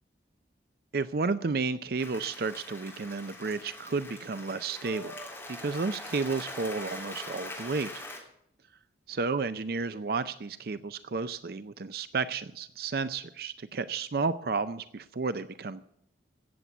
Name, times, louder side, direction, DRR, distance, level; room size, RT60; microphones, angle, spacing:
voice 1, 0.9-5.1 5.5-8.0 9.1-15.8, right 4 dB, 55° right, 13 dB, 0.5 m, -32 dB
Applause, 2.0-8.2, left 1 dB, 10° left, 3.2 m, -42 dB
16.5 x 7.5 x 8.1 m, 0.70 s
head